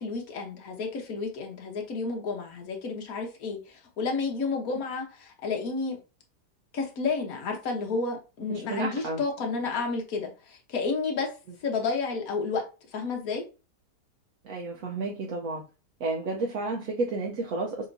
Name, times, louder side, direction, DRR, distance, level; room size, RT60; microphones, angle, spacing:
voice 1, 0.0-6.0 6.7-11.3 11.6-12.6 12.9-13.4, left 4 dB, 60° left, 1.5 m, -31 dB
voice 2, 8.5-9.2 14.4-15.6 16.0-17.9, right 3 dB, 65° right, 1.1 m, -31 dB
6.5 x 3.0 x 2.7 m
omnidirectional pair, 1.7 m